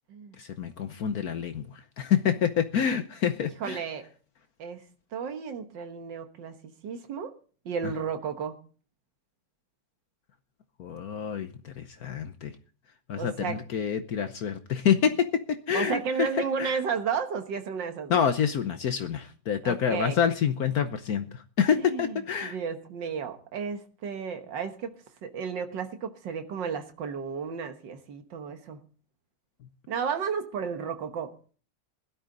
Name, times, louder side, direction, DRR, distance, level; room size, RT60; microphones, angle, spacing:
voice 1, 0.4-1.6 2.0-3.8 10.8-12.5 13.1-16.3 16.6-16.8 18.1-21.3 21.6-22.5, left 8 dB, 60° left, 9 dB, 1.3 m, -27 dB
voice 2, 3.6-4.1 4.6-4.9 5.1-7.3 7.7-8.6 13.2-13.6 15.7-18.2 19.6-20.2 21.7-24.9 25.2-28.8 29.9-31.3, right 6 dB, 85° right, 7 dB, 1.9 m, -33 dB
17.0 x 12.0 x 3.9 m, 0.41 s
omnidirectional pair, 1.9 m